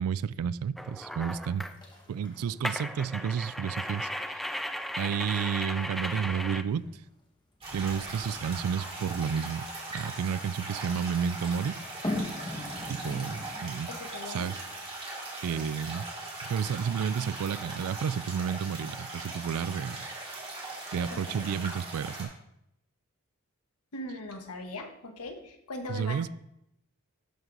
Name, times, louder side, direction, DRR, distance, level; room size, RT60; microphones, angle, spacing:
voice 1, 0.0-1.6 2.1-4.4 5.0-6.8 7.7-9.6 9.9-11.8 12.4-12.6 12.9-13.9 14.3-14.6 15.4-16.1 16.4-20.1 20.9-22.3 25.9-26.3, right 7 dB, 70° right, 18 dB, 0.3 m, -31 dB
sound 1, 0.8-1.7 2.6-6.6, equal, ahead, 0.4 m, -36 dB
sound 2, 1.0-1.4 1.7-3.4 3.8-4.3 4.7-4.8 5.2-7.1 8.7-10.5 11.9-14.1 14.4-14.5, left 1 dB, 20° left, 1.4 m, -40 dB
sound 3, 7.6-22.2, right 2 dB, 25° right, 2.6 m, -40 dB
voice 2, 13.9-14.5 21.1-21.4 23.9-26.3, left 2 dB, 85° left, 4 dB, 1.2 m, -40 dB
12.0 x 4.6 x 3.9 m, 0.80 s
head